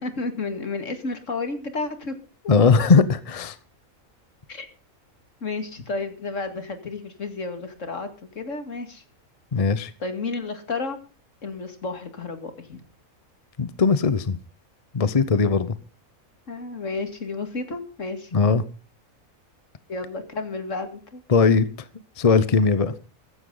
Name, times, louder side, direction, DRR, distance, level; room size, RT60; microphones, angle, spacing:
voice 1, 0.0-2.1 2.4-2.5 4.5-4.7 5.4-9.0 10.0-11.0 11.4-12.8 16.5-18.3 19.9-21.2, left 3 dB, 60° left, 8 dB, 2.5 m, -31 dB
voice 2, 2.5-3.6 9.5-9.9 13.6-14.4 14.9-15.8 18.3-18.6 21.3-21.7 22.2-22.9, left 5 dB, 35° left, 14 dB, 0.7 m, -19 dB
14.5 x 14.5 x 3.9 m, 0.35 s
omnidirectional pair, 1.5 m